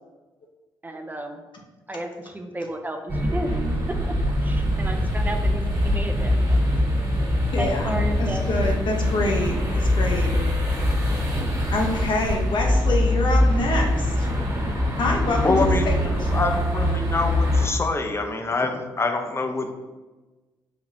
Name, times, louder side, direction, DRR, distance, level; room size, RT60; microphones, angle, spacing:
voice 1, 0.8-1.4 1.9-3.5 3.9-4.2 4.4-6.6 7.6-8.4, right 1 dB, 20° right, 5 dB, 0.5 m, -33 dB
sound 1, 3.1-17.7, left 1 dB, 40° right, 1.5 m, -23 dB
voice 2, 7.5-10.3 11.7-14.3 15.0-16.3, left 2 dB, 60° left, 1 dB, 0.8 m, -26 dB
voice 3, 15.4-19.7, left 3 dB, 30° left, 5 dB, 0.6 m, -25 dB
4.3 x 2.9 x 2.5 m, 1.2 s
supercardioid pair, 50°, 9 cm